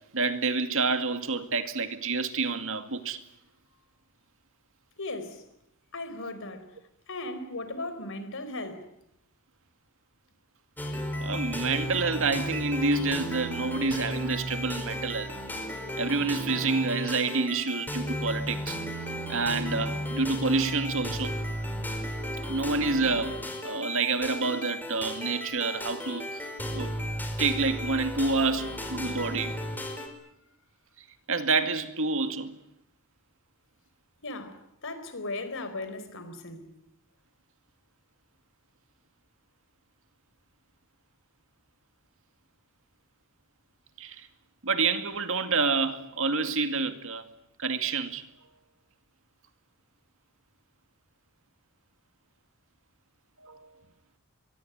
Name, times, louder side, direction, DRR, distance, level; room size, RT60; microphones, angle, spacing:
voice 1, 0.1-3.2 11.2-15.3 16.0-18.8 19.3-21.4 22.4-26.4 26.7-27.0 27.4-29.5 31.3-32.5 44.0-44.3 44.6-47.2 47.6-48.3 53.4-53.7, right 4 dB, 65° right, 2.2 m, -28 dB
voice 2, 5.0-5.4 5.9-6.7 7.1-8.9 34.2-36.7, left 2 dB, 65° left, 4.4 m, -37 dB
sound 1, 10.8-30.1, equal, 10° left, 4.8 m, -34 dB
24.0 x 23.0 x 9.4 m
head